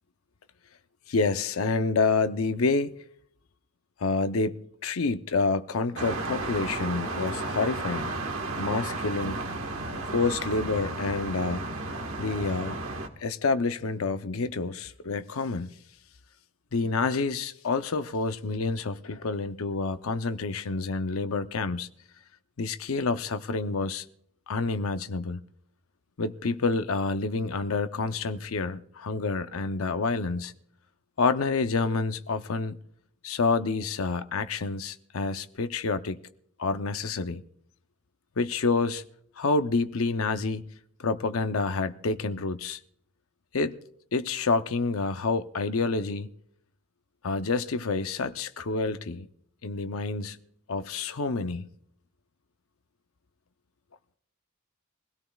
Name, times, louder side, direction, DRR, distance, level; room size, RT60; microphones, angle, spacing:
voice 1, 1.1-2.9 4.0-8.1 8.6-9.4 10.1-11.7 12.2-12.8 13.2-15.8 16.7-21.9 22.6-24.0 24.5-25.4 26.2-30.5 31.2-32.8 33.2-36.2 36.6-37.4 38.4-39.0 39.4-40.7 41.0-42.8 43.5-43.7 44.1-46.3 47.2-49.3 49.6-50.4 50.7-51.7, left 4 dB, 75° left, 0.6 m, -28 dB
sound 1, 6.0-13.1, right 2 dB, 70° right, 1.4 m, -33 dB
23.5 x 17.0 x 2.3 m
head